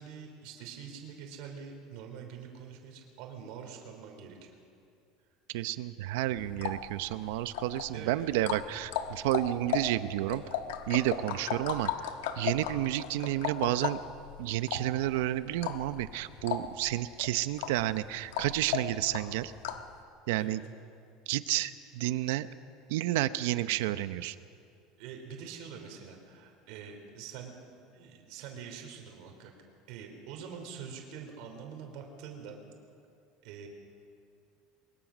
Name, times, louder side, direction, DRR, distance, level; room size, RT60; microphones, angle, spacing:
voice 1, 0.0-4.4 7.9-8.1 20.4-20.6 25.0-27.6 27.9-29.5 29.9-32.6 33.4-33.7, right 7 dB, 55° right, 3 dB, 3.2 m, -45 dB
voice 2, 5.5-10.4 10.9-14.0 14.4-19.5 20.3-20.6 21.3-22.5 22.9-24.3, right 15 dB, 75° right, 13 dB, 0.7 m, -31 dB
sound 1, 6.4-19.9, left 9 dB, 85° left, 1.4 m, -37 dB
22.0 x 21.0 x 6.2 m, 2.4 s
cardioid pair, 180°, 0 cm